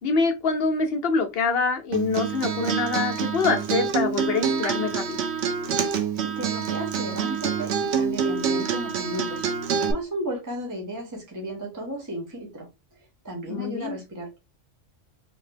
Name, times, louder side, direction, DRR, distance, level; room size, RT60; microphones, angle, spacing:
voice 1, 0.0-5.2 13.5-14.0, left 4 dB, 55° left, 0.9 m, -25 dB
Acoustic guitar, 1.9-9.9, right 6 dB, 65° right, 0.9 m, -27 dB
voice 2, 6.2-9.4 9.9-14.4, equal, 15° right, 0.8 m, -34 dB
3.5 x 2.8 x 3.3 m
omnidirectional pair, 1.3 m